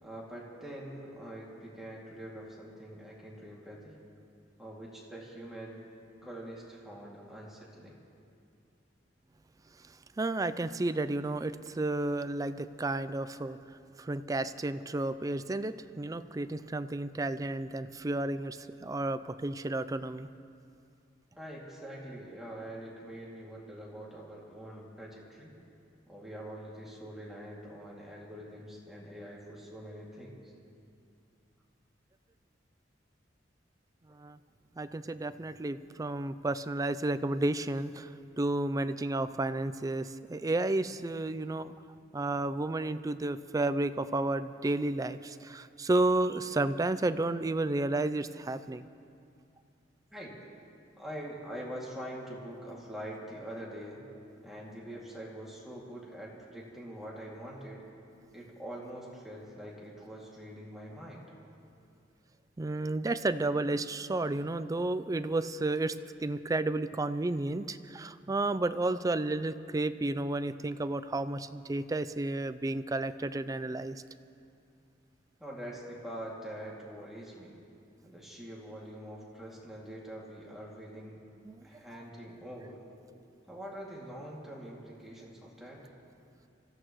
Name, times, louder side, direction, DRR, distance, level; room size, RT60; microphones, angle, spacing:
voice 1, 0.0-3.9 4.6-5.8 6.2-8.0 21.4-25.5 26.1-30.5 50.1-50.3 51.0-54.0 54.4-57.8 58.3-61.3 75.4-77.6 78.0-81.2 81.6-82.8 83.5-85.8, right 1 dB, ahead, -5 dB, 2.3 m, -44 dB
voice 2, 10.2-13.6 14.0-20.3 34.2-34.4 34.8-38.1 38.4-41.7 42.1-48.8 62.6-74.0 81.4-81.6, right 2 dB, 20° right, 12 dB, 0.4 m, -32 dB
25.5 x 15.0 x 3.1 m, 2.5 s
head